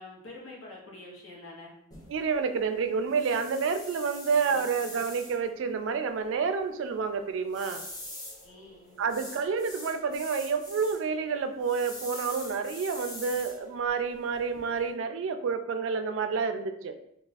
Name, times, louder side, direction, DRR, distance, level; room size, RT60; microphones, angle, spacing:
voice 1, 0.0-1.7 4.4-4.7 8.4-9.2, left 2 dB, 75° left, -3 dB, 1.0 m, -47 dB
sound 1, 1.9-14.9, left 1 dB, 20° left, 0.7 m, -45 dB
voice 2, 2.1-7.8 9.0-17.0, right 5 dB, 65° right, 8 dB, 0.3 m, -29 dB
2.4 x 2.3 x 3.9 m, 0.76 s
head